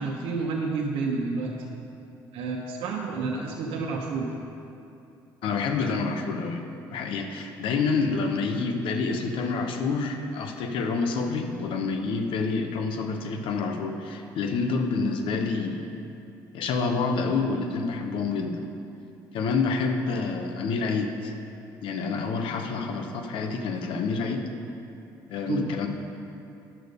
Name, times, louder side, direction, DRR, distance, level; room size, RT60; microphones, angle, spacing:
voice 1, 0.0-1.5 2.3-4.3 25.5-25.7, right 4 dB, 75° right, -2 dB, 1.0 m, -29 dB
voice 2, 5.4-15.9 16.5-18.7 19.3-21.3 21.8-24.5 25.3-25.9, left 4 dB, 70° left, 5 dB, 1.0 m, -28 dB
10.0 x 6.6 x 5.2 m, 2.7 s
supercardioid pair, 70°, 9 cm